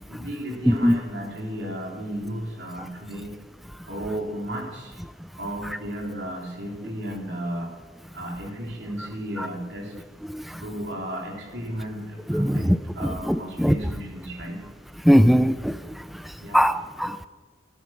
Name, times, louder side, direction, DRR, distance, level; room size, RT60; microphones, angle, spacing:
voice 1, 0.0-3.4 3.9-5.0 5.4-7.7 8.1-9.9 10.6-14.6 16.4-16.7, equal, 65° right, -1 dB, 3.8 m, -34 dB
voice 2, 12.3-12.8 13.3-13.7 15.1-15.7 16.5-17.3, equal, ahead, 12 dB, 0.4 m, -19 dB
13.5 x 12.5 x 5.9 m, 1.4 s
head